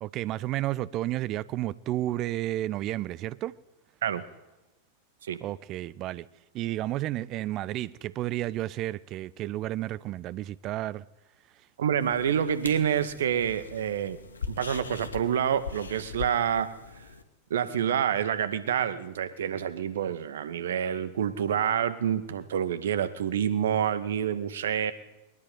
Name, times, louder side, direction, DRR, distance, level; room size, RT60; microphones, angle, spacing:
voice 1, 0.0-3.5 5.4-6.3 6.5-11.1, right 15 dB, 35° right, 1.0 m, -32 dB
voice 2, 11.8-14.2 14.5-16.7 17.5-24.9, right 9 dB, 60° right, 2.0 m, -27 dB
sound 1, 12.0-17.2, left 5 dB, 75° left, 2.5 m, -41 dB
22.5 x 20.0 x 9.5 m
figure-of-eight pair, 90°, 0 cm